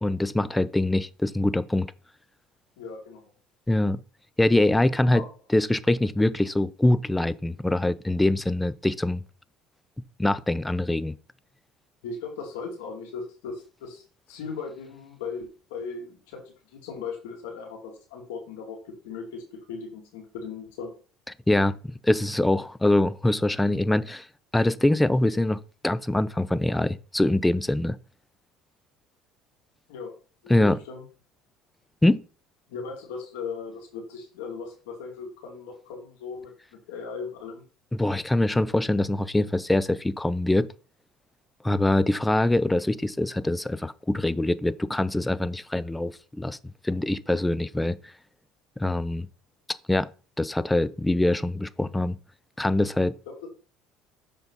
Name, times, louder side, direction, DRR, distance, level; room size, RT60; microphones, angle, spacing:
voice 1, 0.0-1.9 3.7-4.0 4.4-5.2 5.5-9.2 10.2-11.1 21.5-24.3 24.5-28.0 30.5-30.8 32.0-32.2 37.9-40.7 41.6-46.6 46.8-48.1 48.8-49.3 49.9-50.1 50.4-52.2 52.6-53.1, left 1 dB, 10° left, 0.5 m, -24 dB
voice 2, 2.8-3.2 5.0-5.3 12.0-14.0 14.3-16.4 16.7-18.8 19.0-19.4 19.7-20.9 29.9-30.1 30.4-31.1 32.7-36.5 36.9-37.6 53.3-53.5, left 5 dB, 85° left, 2.8 m, -37 dB
7.0 x 5.3 x 4.1 m
supercardioid pair, 100°, 0 cm